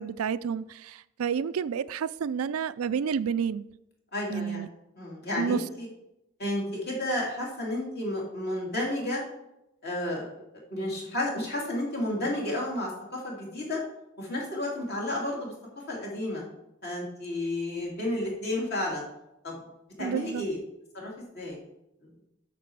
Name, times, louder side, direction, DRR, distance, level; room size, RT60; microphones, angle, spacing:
voice 1, 0.0-3.7 4.3-4.7 5.4-5.6 20.0-20.5, right 7 dB, 80° right, 0.4 m, -30 dB
voice 2, 4.1-4.6 5.0-5.9 6.4-9.2 9.8-10.3 10.7-13.8 14.2-15.5 15.9-16.4 16.8-19.0 19.4-19.6 20.0-20.6 20.9-21.6 22.0-22.1, left 1 dB, 45° left, 2.8 m, -31 dB
9.2 x 6.8 x 4.7 m
head